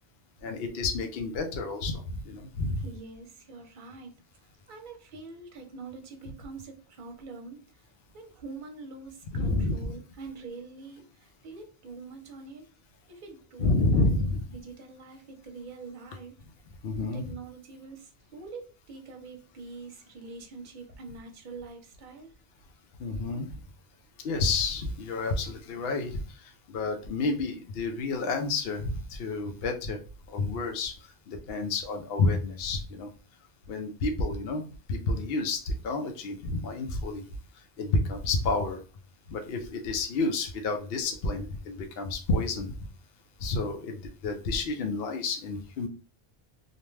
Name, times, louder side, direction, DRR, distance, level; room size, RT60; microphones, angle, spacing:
voice 1, 0.4-2.8 9.3-9.9 13.6-14.4 16.8-17.2 23.0-23.5 24.2-26.4 26.7-30.0 30.3-30.9 31.3-33.1 33.7-34.6 34.9-37.3 37.8-38.8 39.3-42.7 43.4-45.9, left 3 dB, 75° left, 0.8 m, -29 dB
voice 2, 2.8-12.7 13.1-16.4 17.1-22.3, right 4 dB, 55° right, 0.8 m, -45 dB
2.6 x 2.2 x 3.1 m
omnidirectional pair, 1.0 m